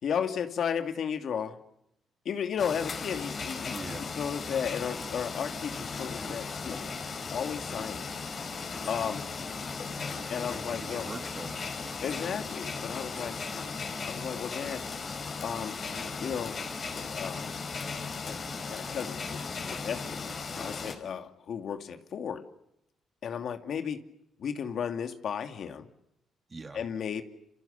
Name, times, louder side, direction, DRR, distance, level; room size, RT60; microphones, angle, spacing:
voice 1, 0.0-1.6 2.2-6.8 7.3-8.1 8.9-9.3 10.3-11.1 12.0-13.4 14.1-14.8 15.4-15.8 16.2-16.6 17.0-17.5 18.2-18.4 18.7-22.5 23.2-24.0 24.4-25.9 26.7-27.2, left 7 dB, 60° left, 6 dB, 2.5 m, -34 dB
sound 1, 2.6-20.9, left 4 dB, 45° left, 5.0 m, -37 dB
voice 2, 3.6-4.1 9.8-10.2 10.5-11.7 26.5-26.8, right 3 dB, 30° right, 6 dB, 3.1 m, -43 dB
28.0 x 27.5 x 7.0 m, 0.81 s
cardioid pair, 90°, 0 cm